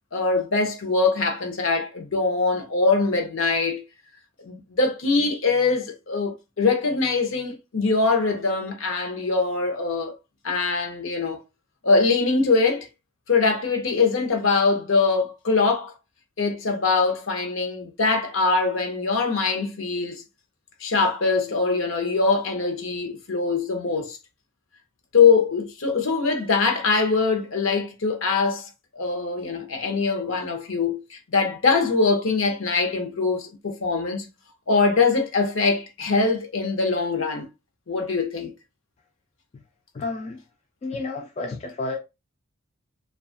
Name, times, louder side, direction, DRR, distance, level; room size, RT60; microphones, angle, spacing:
voice 1, 0.1-3.8 4.4-10.1 10.4-11.4 11.8-12.9 13.3-15.9 16.4-20.2 20.8-24.2 25.1-34.3 34.7-37.5 37.9-38.5, left 4 dB, 70° left, 0.7 m, -23 dB
voice 2, 39.9-40.4 40.8-42.0, left 3 dB, 30° left, 0.3 m, -31 dB
2.7 x 2.3 x 2.5 m
head